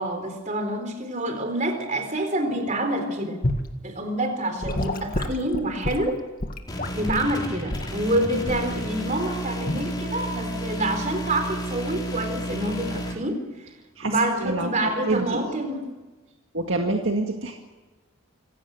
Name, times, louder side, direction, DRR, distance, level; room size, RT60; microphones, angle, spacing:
voice 1, 0.0-3.4 3.8-6.2 6.9-13.4 14.0-15.8, right 1 dB, 35° right, 6 dB, 4.0 m, -27 dB
Gurgling / Sink (filling or washing) / Liquid, 3.4-3.7 4.6-7.3 7.7-8.0 8.5-8.7 9.6-9.9, left 1 dB, 40° left, 2.0 m, -29 dB
sound 1, 6.7-13.1, equal, 20° left, 4.1 m, -32 dB
voice 2, 14.0-15.5 16.5-17.6, right 2 dB, 60° right, 2 dB, 2.0 m, -27 dB
26.0 x 16.5 x 8.0 m, 1.2 s
head